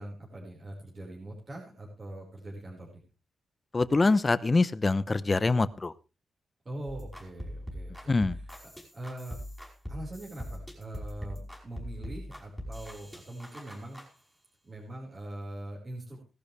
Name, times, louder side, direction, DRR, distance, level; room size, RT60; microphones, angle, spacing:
voice 1, 0.0-3.0 6.7-8.2 8.9-9.4 9.9-14.2 14.6-16.2, right 1 dB, 30° right, -2 dB, 5.2 m, -42 dB
voice 2, 3.7-5.9 8.1-8.4, left 3 dB, 25° left, 15 dB, 0.8 m, -24 dB
sound 1, 6.9-14.1, equal, ahead, 5.3 m, -42 dB
17.5 x 12.0 x 3.4 m, 0.31 s
wide cardioid pair, 145°, 0 cm